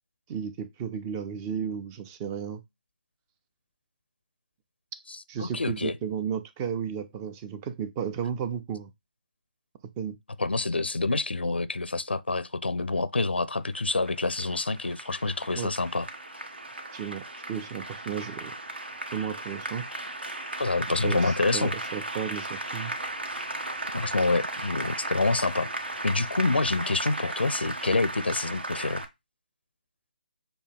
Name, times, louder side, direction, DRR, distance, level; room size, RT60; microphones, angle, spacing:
voice 1, 0.3-2.6 5.3-8.9 10.0-10.2 15.6-15.7 16.9-17.2 17.5-18.5 19.1-19.8 21.0-22.9, right 7 dB, 20° right, 0.4 m, -33 dB
voice 2, 5.1-6.0 10.4-16.1 20.6-21.7 23.9-25.7 26.0-29.0, left 3 dB, 85° left, 0.5 m, -27 dB
Applause, 13.7-29.1, right 2 dB, 80° right, 1.3 m, -36 dB
6.8 x 2.3 x 3.5 m
figure-of-eight pair, 145°, 6 cm